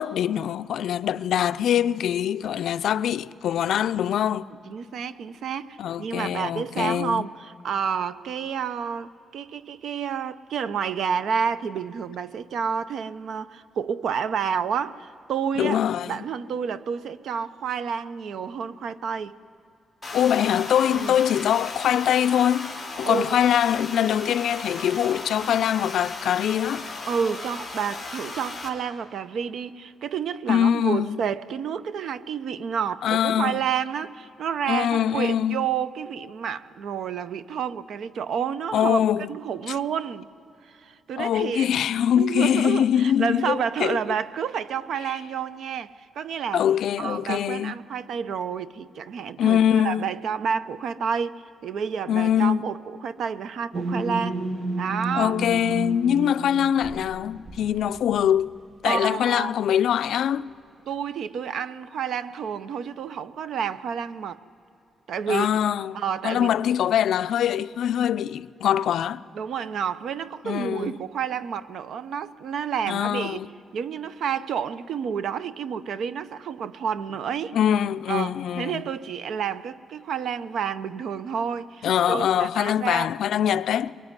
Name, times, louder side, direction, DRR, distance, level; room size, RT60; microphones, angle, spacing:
voice 1, 0.0-4.5 5.8-7.3 15.6-16.3 20.1-22.7 23.0-26.9 30.5-31.2 33.0-33.7 34.7-35.7 38.7-39.3 39.7-39.8 41.2-44.0 46.5-47.8 49.4-50.1 52.1-52.6 55.2-58.5 58.8-60.5 65.3-69.2 70.4-71.0 72.9-73.5 77.5-78.8 81.8-83.9, left 9 dB, 70° left, 0.5 m, -23 dB
voice 2, 4.7-15.8 16.0-19.4 20.9-21.2 23.0-23.4 27.1-39.0 39.3-40.3 40.7-41.7 42.2-46.6 47.0-54.4 54.7-55.3 58.8-59.5 60.9-64.4 65.1-65.5 65.9-66.5 69.3-73.5 73.7-77.6 78.1-83.1, right 7 dB, 65° right, 0.7 m, -30 dB
sound 1, 20.0-28.7, left 3 dB, 5° left, 3.5 m, -36 dB
sound 2, 53.7-58.5, right 2 dB, 30° right, 1.3 m, -32 dB
22.5 x 22.0 x 9.7 m
cardioid pair, 150°, 0 cm